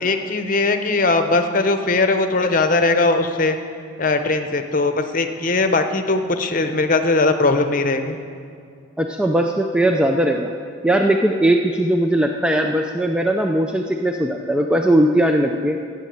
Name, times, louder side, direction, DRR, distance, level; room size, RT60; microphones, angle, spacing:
voice 1, 0.0-3.6 4.0-8.2, left 3 dB, 40° left, 7 dB, 0.8 m, -19 dB
voice 2, 9.0-10.5 10.8-15.8, right 1 dB, 5° right, 3 dB, 0.4 m, -19 dB
12.5 x 7.6 x 8.7 m, 2.4 s
head